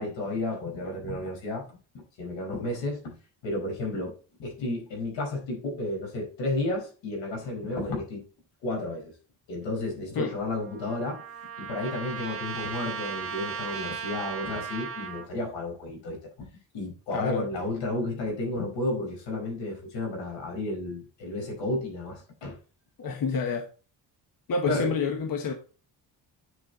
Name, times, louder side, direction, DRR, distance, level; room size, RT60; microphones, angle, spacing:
voice 1, 0.0-1.6 1.9-3.1 3.4-8.2 8.6-9.1 9.5-11.2 11.6-16.5 16.7-22.6 24.6-24.9, left 2 dB, 85° left, 0 dB, 5.0 m, -32 dB
Trumpet, 10.1-15.3, right 6 dB, 30° right, 1.2 m, -37 dB
voice 2, 17.1-17.5 23.0-23.6 24.5-25.5, left 5 dB, 50° left, 4 dB, 1.2 m, -28 dB
9.4 x 5.5 x 4.0 m, 0.37 s
cardioid pair, 135°, 43 cm